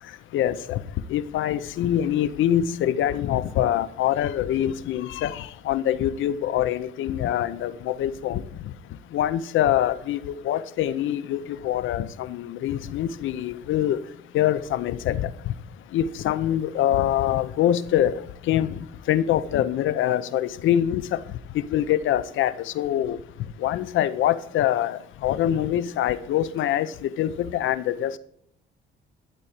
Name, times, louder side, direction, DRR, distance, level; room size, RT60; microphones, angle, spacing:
voice 1, 0.3-0.8 1.1-8.4 9.1-10.2 10.4-14.0 14.3-15.5 15.9-18.1 18.5-18.8 19.1-21.2 21.5-23.2 23.6-28.2, left 11 dB, 80° left, 15 dB, 0.7 m, -24 dB
12.0 x 4.2 x 7.1 m, 0.68 s
cardioid pair, 90°, 20 cm